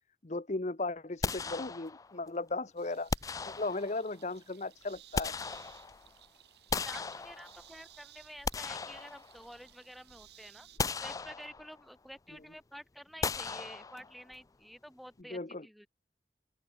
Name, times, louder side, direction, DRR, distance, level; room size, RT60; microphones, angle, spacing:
voice 1, 0.2-3.1 3.4-5.4 15.3-15.6, left 2 dB, 40° left, 0.9 m, -36 dB
sound 1, 1.2-2.3 3.1-4.1 4.8-6.1 6.7-7.8 8.2-9.7 10.1-10.2 10.8-11.8 13.2-14.3, left 4 dB, 20° left, 0.3 m, -37 dB
sound 2, 2.8-10.8, right 12 dB, 65° right, 6.6 m, -58 dB
voice 2, 6.8-10.7 11.0-15.9, equal, ahead, 1.2 m, -50 dB
open air
head